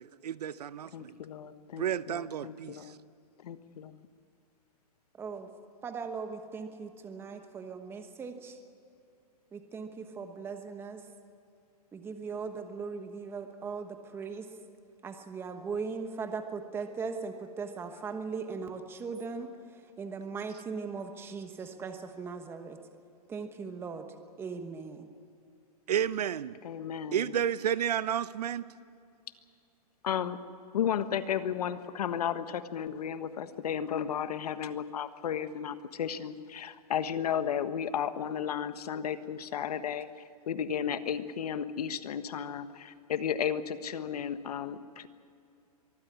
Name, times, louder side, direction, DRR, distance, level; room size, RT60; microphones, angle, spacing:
voice 1, 0.0-1.1 1.8-2.8 25.9-26.5 27.1-28.6, right 9 dB, 85° right, 16 dB, 0.8 m, -31 dB
voice 2, 0.9-2.9 3.4-4.0 26.6-27.4 30.0-30.4 30.7-45.1, left 8 dB, 75° left, 11 dB, 1.4 m, -34 dB
voice 3, 5.2-5.5 5.8-8.6 9.5-11.0 11.9-14.5 15.0-19.5 20.0-22.8 23.3-24.0 24.4-25.1, right 5 dB, 10° right, 7 dB, 1.2 m, -39 dB
23.5 x 14.5 x 9.7 m, 2.5 s
hypercardioid pair, 150°, 20 cm